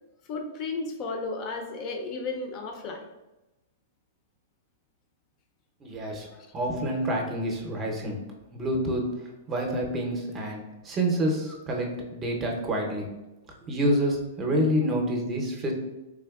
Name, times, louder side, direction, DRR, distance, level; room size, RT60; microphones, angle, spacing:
voice 1, 0.3-3.1 6.2-6.5, left 3 dB, 35° left, 3 dB, 0.5 m, -34 dB
voice 2, 5.8-6.3 6.5-8.2 8.5-9.0 9.5-10.6 10.8-13.1 13.7-15.7, equal, 25° right, 0 dB, 0.6 m, -27 dB
3.6 x 2.8 x 2.3 m, 1.0 s
hypercardioid pair, 140°, 0 cm